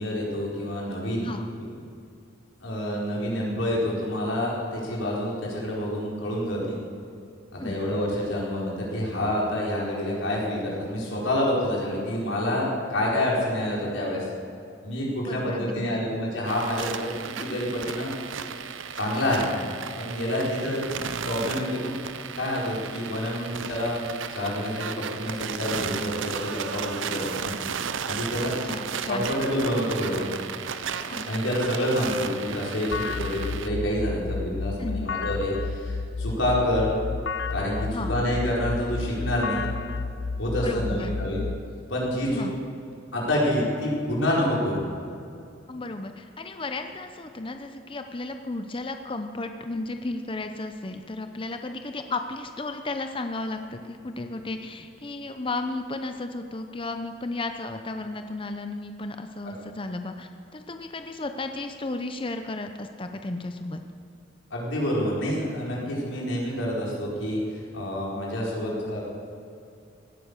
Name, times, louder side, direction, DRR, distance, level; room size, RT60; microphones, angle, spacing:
voice 1, 0.0-1.3 1.6-1.7 2.6-6.8 7.5-14.3 14.8-18.1 18.9-19.5 20.0-21.0 21.3-22.0 22.3-24.0 24.3-27.5 28.1-28.5 29.1-30.3 31.2-36.9 37.5-39.6 40.4-41.4 41.9-42.4 43.1-44.8 64.5-69.0, left 1 dB, 85° left, -4 dB, 4.5 m, -27 dB
voice 2, 15.2-16.0 20.4-20.5 28.6-29.3 31.1-31.3 34.8-35.1 37.9-38.1 40.6-41.2 42.3-42.5 45.7-63.8, left 2 dB, 25° left, 7 dB, 0.7 m, -34 dB
sound 1, 16.5-33.7, right 7 dB, 90° right, 0.7 m, -34 dB
sound 2, 32.9-41.6, left 4 dB, 65° left, 0.6 m, -31 dB
17.0 x 10.5 x 6.7 m, 2.6 s
head